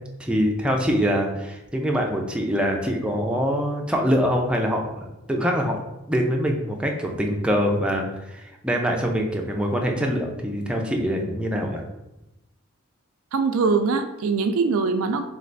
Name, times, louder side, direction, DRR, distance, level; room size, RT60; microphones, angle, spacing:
voice 1, 0.2-5.8 6.1-11.8, equal, 5° right, 1 dB, 0.5 m, -24 dB
voice 2, 13.3-15.3, right 4 dB, 80° right, 7 dB, 0.4 m, -22 dB
3.3 x 3.2 x 3.9 m, 0.94 s
head